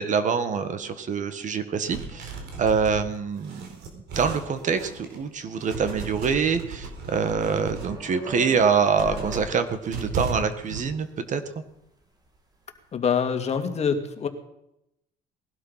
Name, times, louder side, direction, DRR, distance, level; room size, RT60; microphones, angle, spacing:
voice 1, 0.0-2.3 2.6-3.7 3.9-11.6, right 6 dB, 45° right, 10 dB, 1.7 m, -25 dB
sound 1, 1.9-5.3 5.6-8.0 8.4-10.8, right 4 dB, 80° right, 4.3 m, -36 dB
sound 2, 4.7-5.0 5.3-12.4, right 1 dB, 25° right, 2.9 m, -42 dB
voice 2, 12.9-14.3, left 6 dB, 40° left, 6 dB, 2.3 m, -25 dB
19.5 x 12.0 x 5.7 m, 0.82 s
cardioid pair, 110°, 17 cm